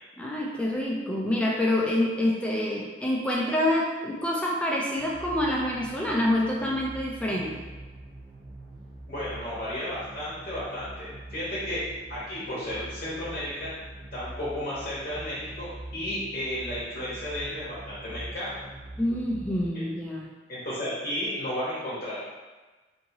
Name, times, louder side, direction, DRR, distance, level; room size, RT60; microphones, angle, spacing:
voice 1, 0.2-7.6 19.0-20.3, left 1 dB, 5° left, -3 dB, 0.4 m, -27 dB
sound 1, 4.9-19.7, right 2 dB, 45° right, 0.8 m, -44 dB
voice 2, 9.1-13.8 14.1-18.7 20.5-22.2, left 1 dB, 45° left, -9 dB, 0.8 m, -33 dB
2.8 x 2.6 x 2.8 m, 1.2 s
head